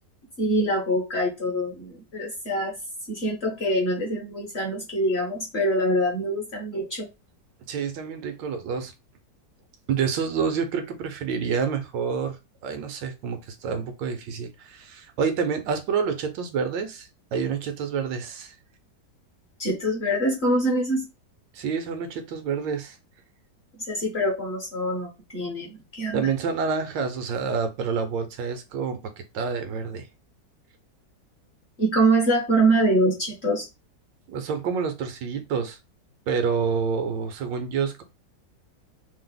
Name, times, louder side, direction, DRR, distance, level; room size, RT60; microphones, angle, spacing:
voice 1, 0.4-2.7 3.1-7.1 19.6-21.1 23.9-26.3 31.8-33.7, right 1 dB, 50° left, 0.8 m, -24 dB
voice 2, 7.7-8.9 9.9-12.4 12.6-18.5 21.5-23.0 26.1-29.0 29.3-30.0 34.3-35.8 36.3-38.0, right 6 dB, 85° right, 1.4 m, -28 dB
3.3 x 2.0 x 3.7 m
omnidirectional pair, 1.9 m